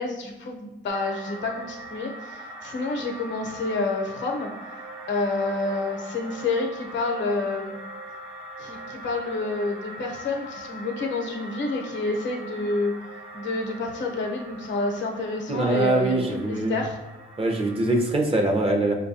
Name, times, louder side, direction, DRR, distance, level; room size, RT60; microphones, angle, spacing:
voice 1, 0.0-4.5 5.1-7.7 8.6-12.9 13.3-17.0, left 3 dB, 70° left, 2 dB, 0.7 m, -28 dB
sound 1, 0.9-18.0, right 1 dB, 90° right, 0.7 m, -41 dB
voice 2, 15.5-16.8 17.4-18.9, right 2 dB, 30° right, 3 dB, 0.6 m, -23 dB
4.5 x 2.3 x 2.6 m, 1.1 s
cardioid pair, 90°, 20 cm